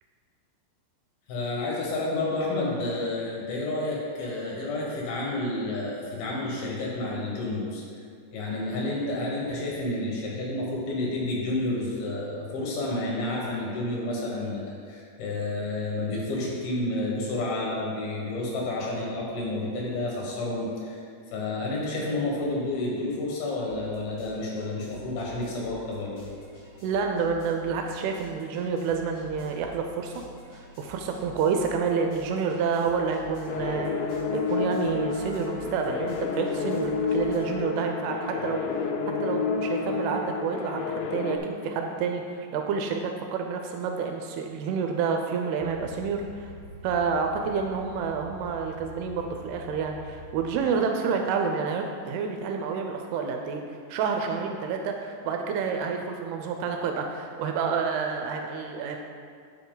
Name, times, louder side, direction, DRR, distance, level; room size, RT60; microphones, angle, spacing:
voice 1, 1.3-7.8 8.3-21.0 21.3-26.3, left 2 dB, 70° left, -3 dB, 3.0 m, -30 dB
sound 1, 21.7-21.8 22.2-37.4, left 1 dB, 45° left, 1.8 m, -50 dB
voice 2, 26.8-30.1 30.5-38.9 39.2-46.5 46.8-59.0, right 5 dB, 80° right, 3 dB, 2.4 m, -29 dB
sound 2, 33.5-41.4, left 5 dB, 85° left, 2.1 m, -30 dB
sound 3, 45.6-50.6, left 2 dB, 60° right, 2.3 m, -45 dB
10.5 x 5.2 x 3.8 m, 2.2 s
omnidirectional pair, 4.8 m